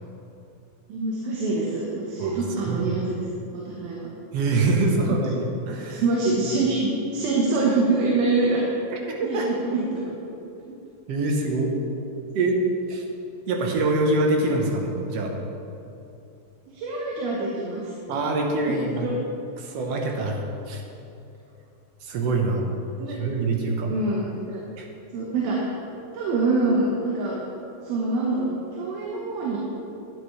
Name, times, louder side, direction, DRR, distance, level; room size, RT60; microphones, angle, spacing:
voice 1, 0.9-3.2 3.5-4.1 4.8-5.2 5.9-8.6 9.2-10.1 16.7-17.9 18.7-19.2 23.0-23.2 23.9-24.6 25.1-25.7 26.1-27.4 27.8-29.6, right 3 dB, 85° right, -4 dB, 3.1 m, -25 dB
voice 2, 4.3-6.0 8.9-9.5 11.1-11.7 12.3-12.6 12.9-13.0 13.5-15.4 18.1-19.1 19.6-20.4 20.7-20.8 22.0-22.7 23.2-23.9 24.8-24.9, right 2 dB, 70° right, 1 dB, 1.5 m, -24 dB
12.5 x 9.5 x 3.2 m, 2.7 s
omnidirectional pair, 4.1 m